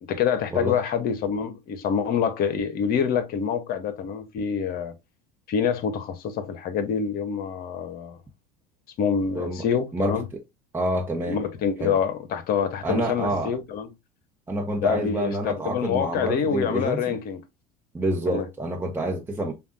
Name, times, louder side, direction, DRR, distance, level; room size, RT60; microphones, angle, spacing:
voice 1, 0.0-4.9 5.5-8.2 9.0-10.2 11.3-13.9 14.8-17.4 18.3-18.5, left 7 dB, 50° left, 0.9 m, -26 dB
voice 2, 9.3-9.7 9.9-10.2 10.7-11.4 11.8-11.9 12.8-13.6 14.5-17.2 17.9-19.5, right 1 dB, 10° right, 1.0 m, -27 dB
6.9 x 2.4 x 2.6 m
hypercardioid pair, 75°, 20 cm